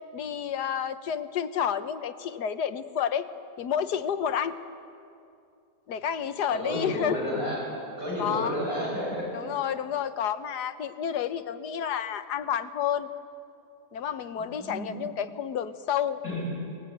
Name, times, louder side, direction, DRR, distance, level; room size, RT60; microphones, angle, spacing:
voice 1, 0.1-3.3 3.6-4.5 5.9-7.2 8.2-8.6 9.3-13.1 13.9-16.2, left 8 dB, 85° left, 11 dB, 1.5 m, -30 dB
voice 2, 6.5-7.7 8.0-9.5 14.4-15.0 16.2-16.4, left 1 dB, 60° right, -4 dB, 8.6 m, -31 dB
22.5 x 20.5 x 9.2 m, 2.6 s
omnidirectional pair, 1.7 m